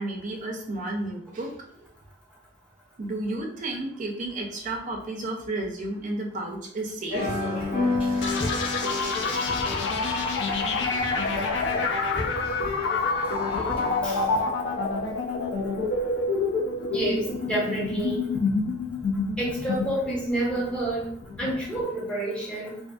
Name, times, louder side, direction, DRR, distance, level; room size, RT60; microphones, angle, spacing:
voice 1, 0.0-1.5 3.0-7.4, right 2 dB, 40° right, 1 dB, 0.4 m, -32 dB
sound 1, 7.1-14.4, left 2 dB, 25° left, 1.0 m, -32 dB
sound 2, 8.2-21.8, left 4 dB, 65° left, 0.4 m, -27 dB
voice 2, 16.9-18.3 19.4-22.8, right 2 dB, 5° left, -6 dB, 0.7 m, -29 dB
2.5 x 2.5 x 2.3 m, 0.64 s
head